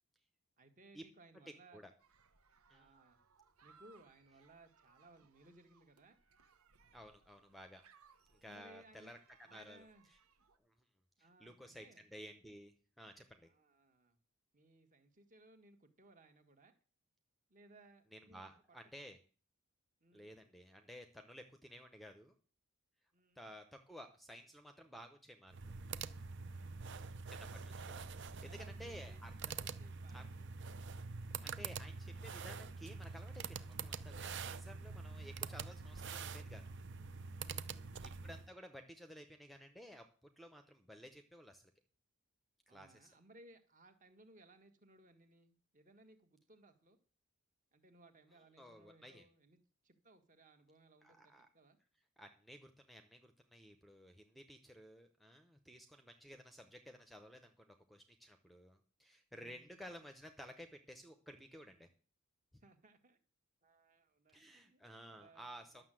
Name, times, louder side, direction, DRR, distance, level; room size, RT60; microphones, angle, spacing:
voice 1, 0.6-1.8 2.7-3.2 3.6-6.2 8.4-9.1 9.5-10.1 11.2-12.0 13.4-14.2 14.5-16.7 17.5-18.8 20.0-20.4 23.1-23.5 26.5-27.2 28.4-30.6 37.4-38.0 42.7-47.0 47.7-49.6 49.8-51.8 59.3-59.7 62.6-63.2 63.6-65.8, right 2 dB, 35° right, 8 dB, 1.6 m, -64 dB
voice 2, 1.5-1.9 2.7-2.9 6.9-7.8 8.3-9.2 9.5-9.9 10.6-10.7 11.2-13.5 18.1-19.2 20.1-22.3 23.4-25.6 27.3-29.5 30.1-30.3 31.4-36.6 38.0-40.1 40.4-41.7 42.7-43.1 48.6-49.3 51.0-51.5 52.2-61.9 62.5-62.6 64.3-65.8, equal, ahead, 7 dB, 0.8 m, -55 dB
sound 1, 2.0-10.6, right 5 dB, 80° right, 1.2 m, -69 dB
sound 2, 25.5-38.5, right 5 dB, 55° right, 0.6 m, -46 dB
12.0 x 6.7 x 7.6 m, 0.39 s
head